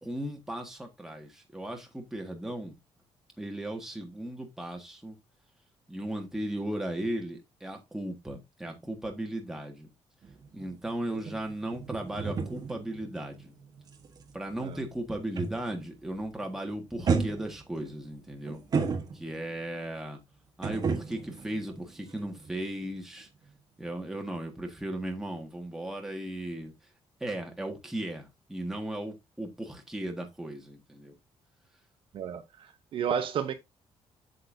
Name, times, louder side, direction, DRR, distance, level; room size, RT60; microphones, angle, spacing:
voice 1, 0.0-2.7 3.4-5.2 5.9-9.9 10.5-13.5 14.3-18.6 19.1-20.2 20.6-23.3 23.8-26.7 27.2-31.1, right 1 dB, 5° right, 1.6 m, -36 dB
sound 1, 10.2-15.9 16.2-16.6 17.0-19.6 20.6-22.6 22.8-23.0, right 5 dB, 35° right, 1.1 m, -34 dB
voice 2, 32.1-33.5, right 8 dB, 55° right, 0.9 m, -32 dB
8.0 x 6.7 x 2.6 m
cardioid pair, 155°, 11 cm